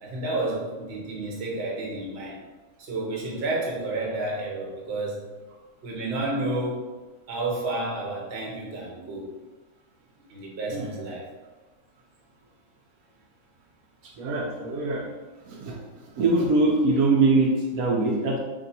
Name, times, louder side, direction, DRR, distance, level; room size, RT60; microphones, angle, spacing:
voice 1, 0.0-2.4 2.8-5.2 5.8-6.8 7.3-9.3 10.3-11.2, right 2 dB, 50° right, -3 dB, 1.1 m, -30 dB
voice 2, 14.0-15.1 15.4-18.4, right 3 dB, 80° right, -1 dB, 1.1 m, -23 dB
3.4 x 2.7 x 3.9 m, 1.2 s
omnidirectional pair, 1.5 m